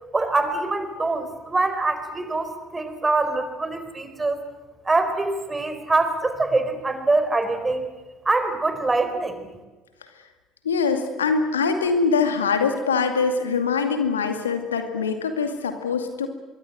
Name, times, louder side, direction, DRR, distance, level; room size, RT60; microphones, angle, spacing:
voice 1, 0.1-4.4 4.8-7.9 8.2-9.5, right 3 dB, 20° right, 9 dB, 4.5 m, -24 dB
voice 2, 10.6-16.3, left 5 dB, 80° left, 7 dB, 2.3 m, -23 dB
25.0 x 23.5 x 7.9 m, 1.2 s
figure-of-eight pair, 55°, 0 cm